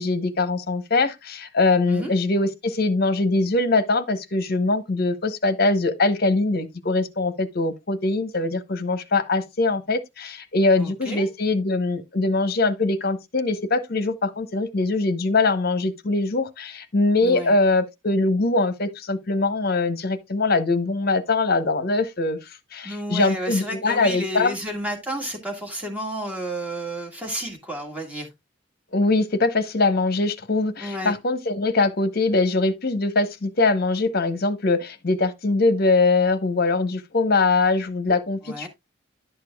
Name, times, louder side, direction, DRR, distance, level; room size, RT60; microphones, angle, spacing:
voice 1, 0.0-22.4 22.7-24.5 28.9-38.7, left 3 dB, 50° left, 0.8 m, -22 dB
voice 2, 10.8-11.3 17.2-17.5 22.8-28.3 30.8-31.1 38.4-38.7, equal, 5° right, 1.7 m, -31 dB
11.0 x 6.7 x 2.3 m
head